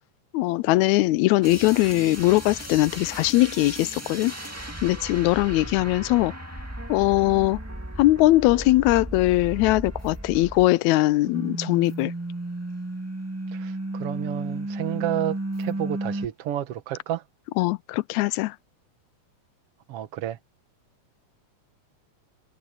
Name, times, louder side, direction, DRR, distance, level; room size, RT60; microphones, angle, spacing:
voice 1, 0.3-4.3 4.8-6.3 6.9-7.6 8.0-12.1 17.6-18.6, left 18 dB, 80° left, 1.8 m, -21 dB
sound 1, 1.4-11.0 11.2-16.3, right 1 dB, 5° right, 1.4 m, -34 dB
voice 2, 13.5-17.2 19.9-20.4, right 12 dB, 65° right, 1.7 m, -31 dB
omnidirectional pair, 3.4 m